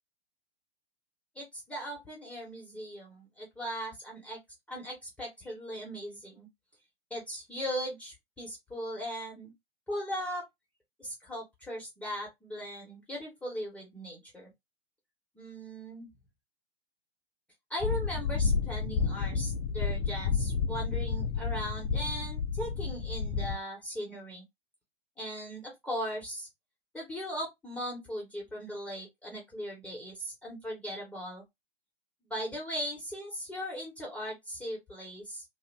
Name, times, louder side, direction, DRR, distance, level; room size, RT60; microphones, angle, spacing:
voice 1, 1.3-4.4 4.7-6.5 7.1-9.5 9.9-10.5 11.0-14.5 15.3-16.1 17.7-24.4 25.2-26.5 26.9-31.4 32.2-35.4, equal, 5° left, 1.1 m, -38 dB
sound 1, 17.8-23.5, left 5 dB, 25° left, 0.4 m, -31 dB
2.6 x 2.5 x 3.2 m
figure-of-eight pair, 115°, 31 cm